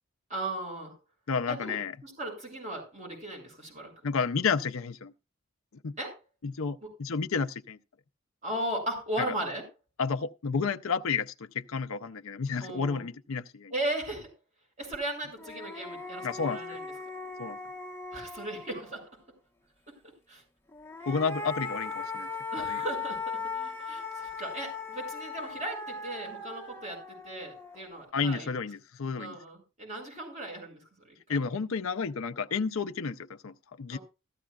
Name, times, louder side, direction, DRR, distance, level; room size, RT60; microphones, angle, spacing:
voice 1, 0.3-1.0 1.5-3.9 6.0-6.2 6.8-6.9 8.4-9.6 12.6-13.0 13.7-14.3 14.8-16.9 18.1-19.1 20.3-20.4 22.5-28.5 29.2-31.4 33.9-34.0, right 1 dB, 30° right, 6.8 m, -37 dB
voice 2, 1.3-2.0 4.0-5.1 5.8-5.9 6.4-7.8 10.0-13.7 16.2-16.8 17.4-17.6 21.1-22.3 22.6-22.8 28.1-29.4 31.3-34.0, left 5 dB, 70° left, 0.6 m, -31 dB
sound 1, 14.9-15.0 15.4-19.1 20.7-28.0, left 4 dB, 10° left, 1.0 m, -38 dB
15.0 x 14.0 x 2.4 m
head